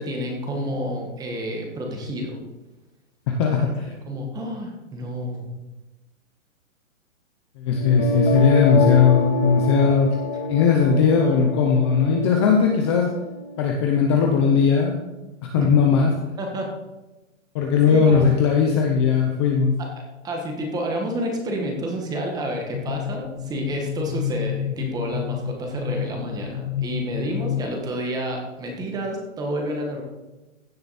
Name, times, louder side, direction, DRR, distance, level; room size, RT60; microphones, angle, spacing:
voice 1, 0.0-2.4 3.3-3.7 4.1-5.5 15.6-15.7 16.4-16.7 17.9-18.3 19.8-19.9 20.2-30.0, right 1 dB, 10° right, 2 dB, 1.5 m, -29 dB
voice 2, 3.4-3.9 7.6-10.1 10.5-13.1 13.6-15.1 15.5-16.1 17.5-19.7, left 6 dB, 20° left, 1 dB, 0.8 m, -18 dB
sound 1, 7.7-13.7, left 2 dB, 40° left, 1.8 m, -26 dB
sound 2, 22.7-27.7, left 10 dB, 75° left, 1.2 m, -30 dB
15.5 x 7.0 x 4.2 m, 1.1 s
hypercardioid pair, 160°, 39 cm